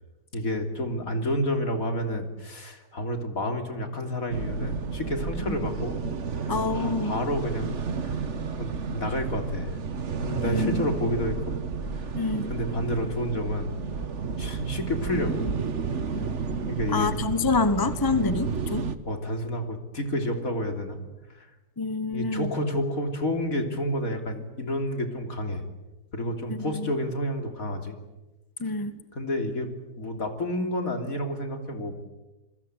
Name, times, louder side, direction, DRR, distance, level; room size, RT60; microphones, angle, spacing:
voice 1, 0.3-6.0 6.4-8.2 8.6-9.7 10.2-11.6 12.5-13.7 14.4-15.4 15.9-16.0 16.7-17.1 19.0-21.0 21.3-21.5 22.1-25.6 26.1-28.0 28.7-28.8 29.1-29.7 30.0-31.9, left 1 dB, 55° left, 5 dB, 3.6 m, -30 dB
sound 1, 4.3-19.0, right 5 dB, 45° right, 1.5 m, -31 dB
voice 2, 6.5-7.1 10.4-10.9 12.2-12.5 16.9-18.9 21.8-22.5 26.5-26.9 28.6-28.9, left 3 dB, 15° left, 12 dB, 0.8 m, -27 dB
28.0 x 22.5 x 8.2 m, 1.1 s
omnidirectional pair, 1.8 m